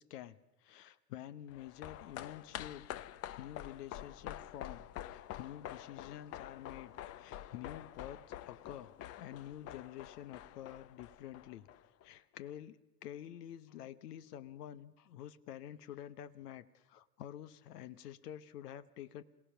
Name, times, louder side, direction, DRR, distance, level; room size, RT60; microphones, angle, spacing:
voice 1, 0.0-2.9 3.3-8.2 8.5-11.7 12.0-19.2, left 11 dB, 70° left, 13 dB, 1.2 m, -49 dB
sound 1, 1.5-12.1 12.3-12.4, left 12 dB, 30° left, 0.7 m, -47 dB
27.5 x 16.5 x 5.8 m, 1.1 s
hypercardioid pair, 105°, 48 cm